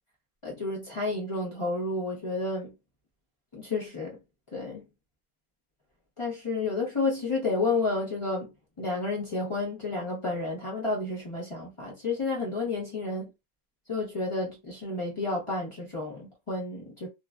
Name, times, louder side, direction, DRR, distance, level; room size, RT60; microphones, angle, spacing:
voice 1, 0.4-2.7 3.5-4.2 4.5-4.8 6.2-8.5 8.8-13.3 13.9-17.1, left 3 dB, 45° left, 0.4 m, -31 dB
3.1 x 2.2 x 2.3 m
omnidirectional pair, 1.8 m